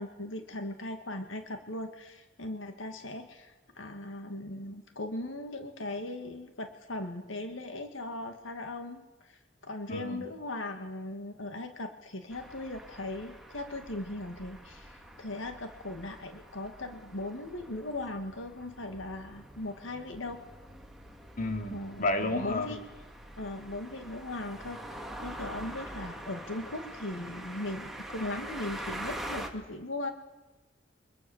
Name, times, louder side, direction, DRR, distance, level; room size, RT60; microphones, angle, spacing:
voice 1, 0.0-20.4 21.7-22.8 23.4-30.1, left 2 dB, 90° left, 6 dB, 2.0 m, -39 dB
voice 2, 9.9-10.3 21.4-22.7, left 2 dB, 45° left, 5 dB, 2.9 m, -31 dB
sound 1, 12.3-29.5, right 1 dB, ahead, 2.5 m, -45 dB
28.5 x 24.0 x 7.2 m, 1.0 s
head